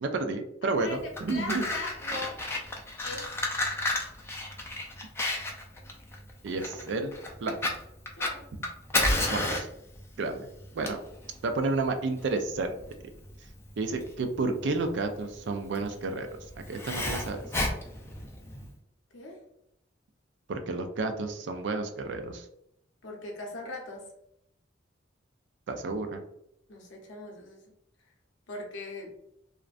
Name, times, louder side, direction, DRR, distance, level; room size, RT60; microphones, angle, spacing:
voice 1, 0.0-1.6 6.4-7.1 7.4-7.6 9.3-9.7 10.2-10.5 10.7-11.0 11.4-12.8 13.8-17.4 20.5-22.5 25.7-26.2, right 3 dB, 65° right, 7 dB, 0.4 m, -31 dB
voice 2, 0.6-2.4 3.0-3.3 8.1-8.5 19.1-19.4 23.0-24.1 26.7-27.7 28.5-29.1, left 2 dB, 80° left, 0 dB, 0.7 m, -40 dB
Fire, 1.0-18.7, left 2 dB, 15° left, 0.3 m, -32 dB
2.5 x 2.1 x 2.4 m, 0.79 s
head